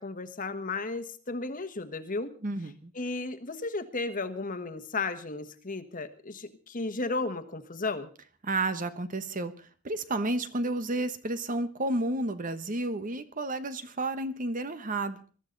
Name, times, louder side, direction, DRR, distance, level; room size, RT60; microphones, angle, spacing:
voice 1, 0.0-2.3 2.9-8.1, left 3 dB, 40° left, 9 dB, 1.4 m, -34 dB
voice 2, 2.4-2.9 8.4-15.2, right 2 dB, 40° right, 11 dB, 1.2 m, -31 dB
22.0 x 13.0 x 4.0 m, 0.39 s
head